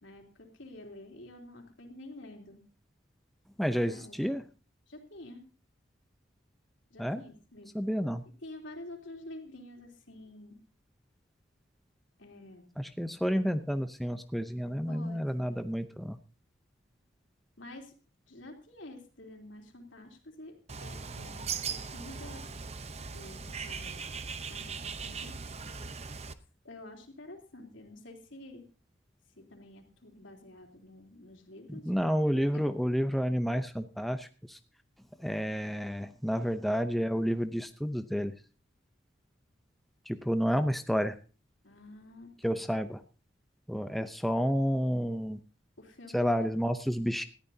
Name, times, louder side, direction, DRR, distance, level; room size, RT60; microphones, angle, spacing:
voice 1, 0.0-2.6 3.9-4.2 4.9-5.5 6.9-7.7 8.4-10.6 12.2-12.7 14.9-15.6 17.6-17.9 18.3-20.5 20.8-22.5 23.1-24.0 24.5-25.3 26.6-28.6 29.4-31.9 32.5-32.7 41.6-42.7 45.8-46.5, left 1 dB, 80° left, 2 dB, 3.3 m, -49 dB
voice 2, 3.6-4.4 7.0-7.2 7.7-8.2 12.8-16.2 31.7-34.6 35.2-38.3 40.1-41.2 42.4-43.0 43.7-45.4 46.1-47.2, equal, ahead, 8 dB, 0.6 m, -30 dB
Bird, 20.7-26.3, right 5 dB, 35° right, 0.8 m, -39 dB
19.5 x 14.0 x 2.8 m, 0.34 s
head